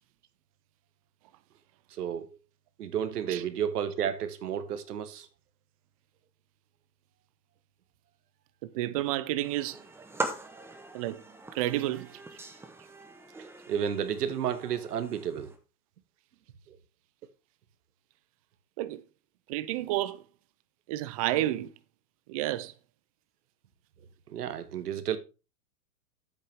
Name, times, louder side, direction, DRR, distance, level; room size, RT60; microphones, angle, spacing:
voice 1, 2.0-2.3 2.8-5.3 13.7-15.5 16.7-16.8 24.3-25.2, right 9 dB, 80° right, 1.4 m, -31 dB
voice 2, 8.6-9.8 10.9-11.2 11.5-12.1 18.8-19.0 19.5-20.2 20.9-21.7 22.3-22.7, right 15 dB, 25° right, 0.4 m, -30 dB
sound 1, 9.4-15.6, right 2 dB, 5° right, 0.8 m, -41 dB
9.1 x 8.0 x 3.5 m
hypercardioid pair, 135°, 46 cm